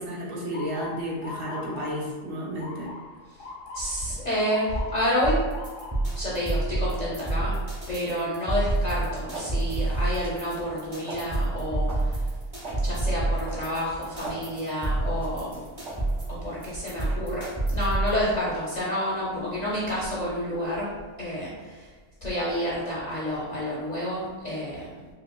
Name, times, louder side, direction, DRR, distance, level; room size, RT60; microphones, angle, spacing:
voice 1, 0.0-2.9, equal, 65° right, -4 dB, 1.1 m, -32 dB
Motor vehicle (road) / Siren, 0.5-12.4 12.9-13.3 14.1-14.4 16.3-16.5 17.0-17.1 17.5-18.2, left 3 dB, 90° left, 1.0 m, -45 dB
voice 2, 3.7-5.4 6.1-7.5 7.9-12.3 12.8-15.7 16.3-21.9 22.2-25.1, equal, 45° left, -7 dB, 0.6 m, -29 dB
sound 1, 5.2-18.2, right 2 dB, 30° right, 0.9 m, -28 dB
sound 2, 8.4-17.1, right 2 dB, 45° right, 1.8 m, -43 dB
5.3 x 2.0 x 2.2 m, 1.4 s
omnidirectional pair, 1.3 m